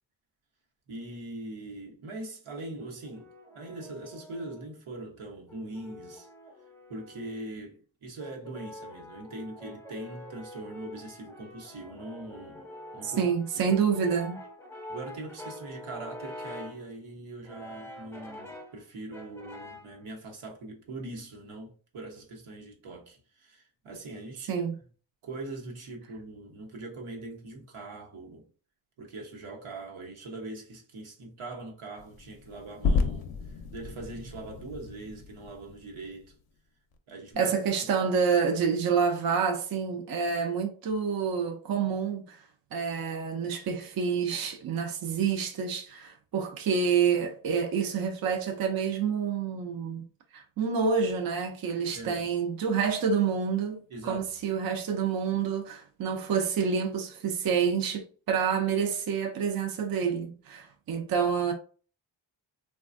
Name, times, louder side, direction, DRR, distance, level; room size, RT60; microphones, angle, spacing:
voice 1, 0.9-6.3 6.9-12.7 12.9-13.2 13.5-13.7 14.9-24.7 25.2-28.5 29.0-36.3 37.1-37.5 51.9-52.2 53.9-54.3, right 2 dB, 80° right, 1.0 m, -42 dB
Brass instrument, 2.8-4.7 5.5-7.5 8.2-16.9 17.4-18.8 19.1-20.0, left 1 dB, 5° left, 0.5 m, -46 dB
voice 2, 13.0-14.4 24.5-24.7 37.4-42.4 42.7-50.0 50.3-61.5, right 6 dB, 50° right, 0.5 m, -28 dB
sound 1, 32.0-36.3, left 4 dB, 50° left, 0.5 m, -32 dB
3.1 x 2.3 x 2.5 m
wide cardioid pair, 110°, 48 cm